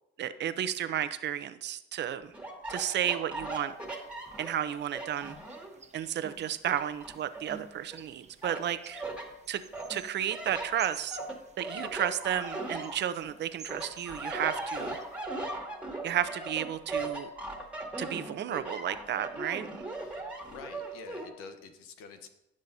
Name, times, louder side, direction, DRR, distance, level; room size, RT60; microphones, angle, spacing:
voice 1, 0.2-2.3 2.7-3.7 4.4-5.4 5.9-9.0 9.5-9.6 9.9-11.2 11.6-15.0 16.0-17.3 18.0-19.7, right 10 dB, 55° right, 12 dB, 0.7 m, -32 dB
sound 1, 2.3-5.8 6.2-8.0 8.4-9.3 9.7-13.4 13.7-21.3, right 2 dB, 5° right, 2.1 m, -39 dB
sound 2, 3.5-15.2, right 5 dB, 35° right, 1.1 m, -54 dB
voice 2, 20.0-22.3, left 5 dB, 90° left, 7 dB, 1.1 m, -48 dB
18.0 x 6.4 x 2.8 m, 0.88 s
cardioid pair, 90°, 21 cm